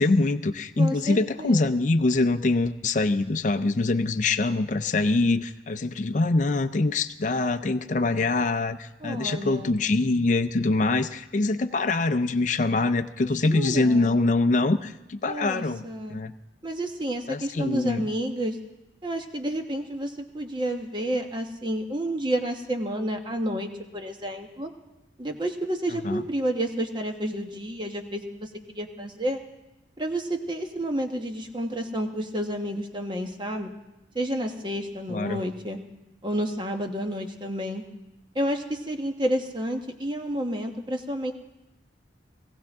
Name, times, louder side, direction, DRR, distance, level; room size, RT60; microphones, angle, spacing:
voice 1, 0.0-16.3 17.3-18.1 26.0-26.2 35.1-35.4, left 3 dB, 45° left, 9 dB, 0.5 m, -24 dB
voice 2, 0.8-1.7 9.0-9.8 13.2-14.2 15.2-16.2 16.6-18.6 19.0-24.7 25.2-29.4 30.0-33.7 34.1-35.8 36.2-37.8 38.3-41.3, right 1 dB, 25° right, 4 dB, 1.1 m, -30 dB
18.5 x 16.0 x 3.6 m, 0.97 s
head